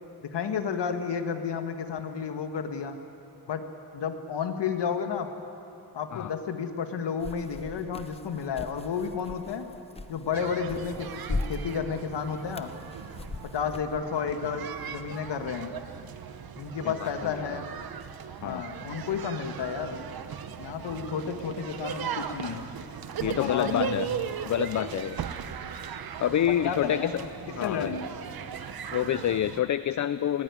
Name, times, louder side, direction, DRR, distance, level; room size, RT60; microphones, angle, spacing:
voice 1, 0.2-3.0 3.5-3.6 3.9-5.3 5.9-9.7 10.1-12.7 13.5-15.7 16.6-17.7 18.4-20.1 20.6-22.6 23.2-24.1 26.4-27.1 27.6-28.0, left 6 dB, 90° left, 7 dB, 1.7 m, -32 dB
sound 1, 7.2-14.0, left 2 dB, 15° left, 0.7 m, -39 dB
sound 2, 10.3-29.6, right 8 dB, 60° right, 1.0 m, -38 dB
voice 2, 16.8-17.5 18.4-18.7 23.2-24.1 24.4-25.2 26.2-27.2 27.5-27.9 28.9-30.4, left 11 dB, 45° left, 14 dB, 0.4 m, -28 dB
19.0 x 18.0 x 9.7 m, 2.8 s
wide cardioid pair, 160°, 41 cm